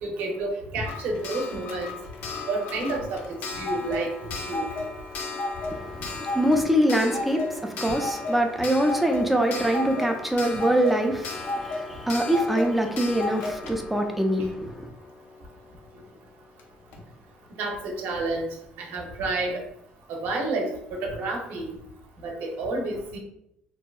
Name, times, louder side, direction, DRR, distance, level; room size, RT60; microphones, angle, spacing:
voice 1, 0.0-1.9 2.5-3.2 3.6-4.7 6.0-6.1 17.6-18.5 18.8-19.6 20.1-21.8 22.2-23.2, right 2 dB, 70° right, 1 dB, 0.6 m, -30 dB
Clock, 0.8-15.4 16.6-16.7 16.9-17.0, left 3 dB, 70° left, 0.4 m, -34 dB
voice 2, 5.7-14.9, right 1 dB, 5° right, 4 dB, 0.3 m, -24 dB
2.7 x 2.2 x 2.3 m, 0.77 s
cardioid pair, 145°, 4 cm